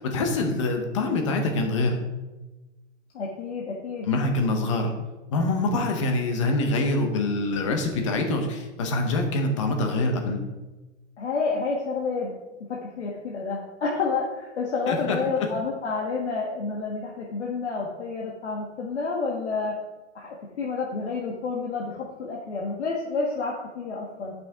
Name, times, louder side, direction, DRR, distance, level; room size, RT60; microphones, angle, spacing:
voice 1, 0.0-2.0 4.0-4.9 5.3-10.4 14.9-15.2, left 2 dB, 25° left, 4 dB, 0.9 m, -25 dB
voice 2, 3.1-4.1 11.2-12.3 12.7-19.8 20.1-24.3, left 4 dB, 65° left, -2 dB, 1.5 m, -29 dB
10.5 x 6.0 x 3.6 m, 1.1 s
hypercardioid pair, 175°, 36 cm